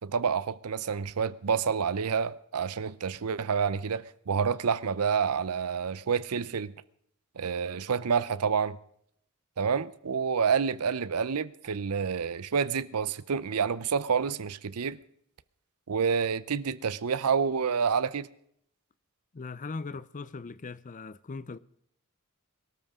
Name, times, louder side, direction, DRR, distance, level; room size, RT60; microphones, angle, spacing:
voice 1, 0.0-6.7 7.4-8.8 9.6-15.0 15.9-18.3, right 6 dB, 85° right, 0.6 m, -28 dB
voice 2, 19.3-21.6, left 4 dB, 35° left, 0.5 m, -39 dB
22.5 x 13.0 x 3.7 m
head